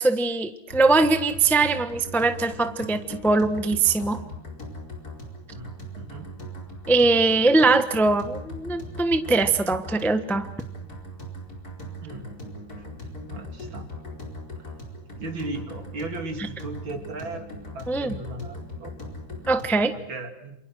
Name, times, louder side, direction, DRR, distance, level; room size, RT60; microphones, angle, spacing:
voice 1, 0.0-4.2 6.9-10.5 17.9-18.1 19.5-19.9, right 3 dB, ahead, 9 dB, 0.8 m, -21 dB
sound 1, 0.7-19.9, equal, 45° left, 5.2 m, -39 dB
voice 2, 5.5-6.3 12.0-12.3 12.8-13.9 14.6-14.7 15.2-17.5 17.7-19.0 19.9-20.5, right 2 dB, 70° right, 4 dB, 3.7 m, -37 dB
28.5 x 27.5 x 6.2 m, 0.74 s
omnidirectional pair, 2.2 m